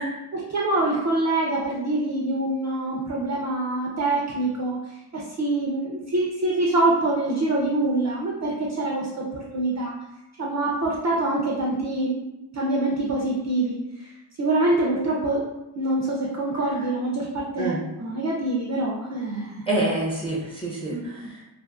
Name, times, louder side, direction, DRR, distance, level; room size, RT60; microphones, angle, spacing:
voice 1, 0.3-9.9 10.4-12.1 12.5-14.1 14.4-15.5 15.8-19.7 20.9-21.1, right 2 dB, 40° right, -3 dB, 0.4 m, -25 dB
voice 2, 19.7-21.4, right 2 dB, 10° left, -6 dB, 0.6 m, -27 dB
2.5 x 2.4 x 2.3 m, 0.98 s
cardioid pair, 90°, 48 cm